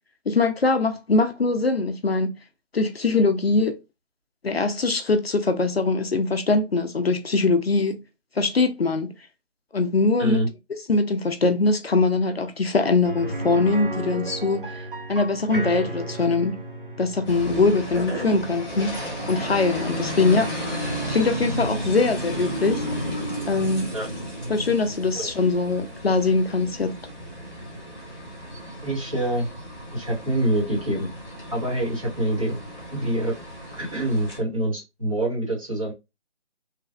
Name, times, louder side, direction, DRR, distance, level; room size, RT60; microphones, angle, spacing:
voice 1, 0.3-2.3 2.7-3.8 4.4-8.0 8.4-9.1 9.7-10.4 10.9-16.6 17.0-20.5 21.1-22.9 23.5-23.9 24.5-26.9, left 3 dB, 60° left, 0.4 m, -22 dB
sound 1, 13.0-22.8 23.1-23.2 25.7-25.8, right 1 dB, 45° right, 0.5 m, -36 dB
sound 2, 17.2-34.4, equal, ahead, 1.0 m, -33 dB
voice 2, 28.8-29.5 29.9-31.1 31.5-32.6 32.9-33.4 33.8-35.9, right 1 dB, 30° right, 1.3 m, -25 dB
3.2 x 2.3 x 2.4 m
figure-of-eight pair, 170°, 36 cm